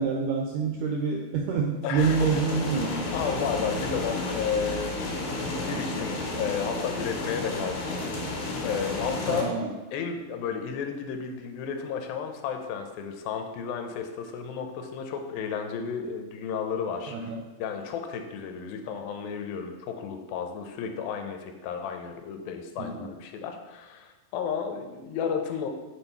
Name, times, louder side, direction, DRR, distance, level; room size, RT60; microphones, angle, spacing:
voice 1, 0.0-3.0 5.7-6.0 9.3-9.7 17.1-17.4 22.8-23.1, right 5 dB, 80° right, 1 dB, 1.8 m, -27 dB
voice 2, 1.8-2.3 3.1-9.5 9.9-17.3 17.6-25.7, left 7 dB, 85° left, 5 dB, 2.4 m, -33 dB
sound 1, 2.0-9.4, left 2 dB, 70° left, 3.4 m, -32 dB
7.2 x 3.9 x 4.5 m, 1.2 s
omnidirectional pair, 4.1 m